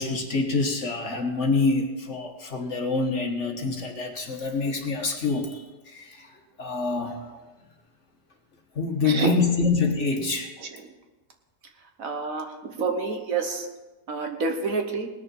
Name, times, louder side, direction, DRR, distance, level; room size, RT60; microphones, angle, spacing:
voice 1, 0.0-7.3 8.7-10.5, left 4 dB, 50° left, 3 dB, 1.6 m, -26 dB
voice 2, 12.0-12.5 12.8-13.6 14.1-15.1, right 4 dB, 60° right, 4 dB, 1.5 m, -27 dB
19.0 x 6.7 x 5.4 m, 1.2 s
omnidirectional pair, 1.7 m